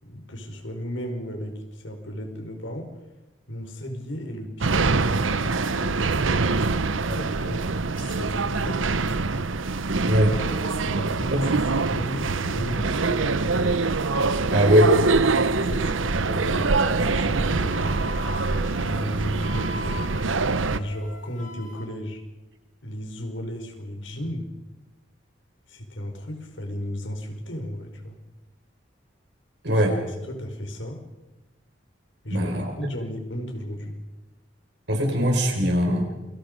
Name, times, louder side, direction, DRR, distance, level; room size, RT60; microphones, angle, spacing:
voice 1, 0.0-2.9 3.5-6.0 7.0-7.7 7.9-9.3 10.8-11.5 11.7-13.8 15.4-18.2 18.8-20.0 20.7-22.2 22.8-24.5 25.7-28.2 29.7-29.8 30.1-31.0 32.2-34.0, equal, 75° left, 4 dB, 4.9 m, -34 dB
sound 1, 4.6-20.8, right 3 dB, 85° right, 1.0 m, -24 dB
voice 2, 10.1-10.4 11.3-11.4 14.5-15.0 29.6-30.0 32.3-32.7 34.9-36.1, equal, 60° right, 2 dB, 5.8 m, -20 dB
Wind instrument woodwind instrument, 17.7-21.9, left 4 dB, 40° left, 4.2 m, -40 dB
29.0 x 25.5 x 5.3 m, 1.0 s
head